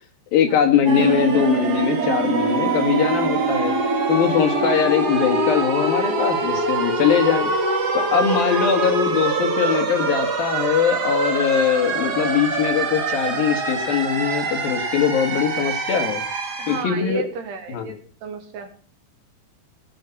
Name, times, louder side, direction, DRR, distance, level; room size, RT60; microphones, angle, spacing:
voice 1, 0.3-3.7 4.1-7.5 8.0-16.2 16.7-17.2 17.7-17.9, left 8 dB, 65° left, 5 dB, 3.4 m, -21 dB
sound 1, 0.8-16.8, right 3 dB, 45° right, 1.4 m, -24 dB
voice 2, 4.6-4.9 8.5-8.9 16.6-17.9 18.2-18.7, right 5 dB, 80° right, 4 dB, 4.6 m, -33 dB
18.0 x 7.3 x 7.1 m, 0.42 s
omnidirectional pair, 4.6 m